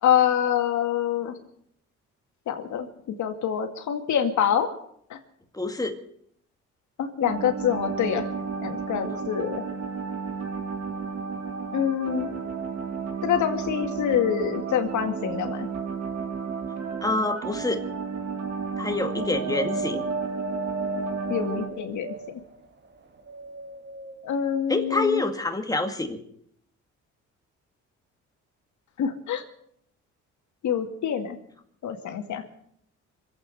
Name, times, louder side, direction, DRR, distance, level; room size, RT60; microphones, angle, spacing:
voice 1, 0.0-1.4 2.5-2.9 3.2-4.8 5.1-5.2 7.0-8.3 8.6-9.6 11.7-12.3 13.2-15.7 21.3-22.1 24.2-25.3 29.0-29.4 30.6-31.4 31.8-32.4, left 9 dB, 75° left, 6 dB, 2.2 m, -25 dB
voice 2, 5.5-6.0 9.1-9.2 17.0-17.8 18.8-20.0 24.7-26.2, left 2 dB, 10° left, 5 dB, 2.1 m, -27 dB
sound 1, 7.2-21.7, right 5 dB, 60° right, 2.9 m, -33 dB
Wind, 19.1-22.6 23.2-24.2 25.0-25.1, right 2 dB, 35° right, 1.6 m, -34 dB
24.5 x 8.5 x 6.7 m, 0.68 s
cardioid pair, 90°, 30 cm